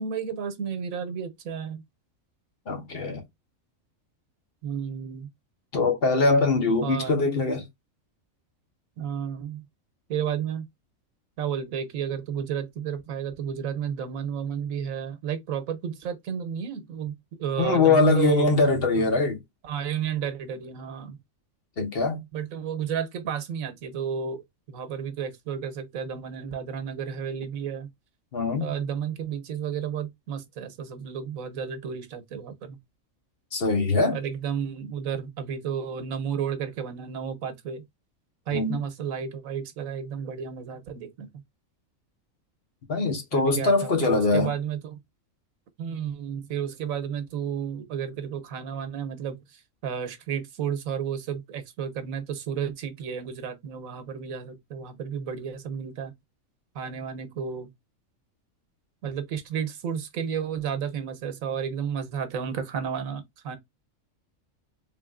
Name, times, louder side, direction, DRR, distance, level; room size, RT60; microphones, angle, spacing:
voice 1, 0.0-1.8 4.6-5.3 6.8-7.2 9.0-9.6 10.1-10.7 11.4-18.5 19.0-19.1 19.6-21.2 22.3-24.4 24.7-27.9 28.6-32.8 34.1-37.8 38.5-41.3 43.3-45.0 45.8-56.1 56.7-57.7 59.0-63.6, right 7 dB, 85° right, 1.2 m, -32 dB
voice 2, 2.7-3.2 5.7-7.6 17.6-19.4 21.8-22.2 28.3-28.7 33.5-34.2 38.5-38.8 42.9-44.5, left 3 dB, 50° left, 1.2 m, -22 dB
3.7 x 3.4 x 2.4 m
omnidirectional pair, 1.4 m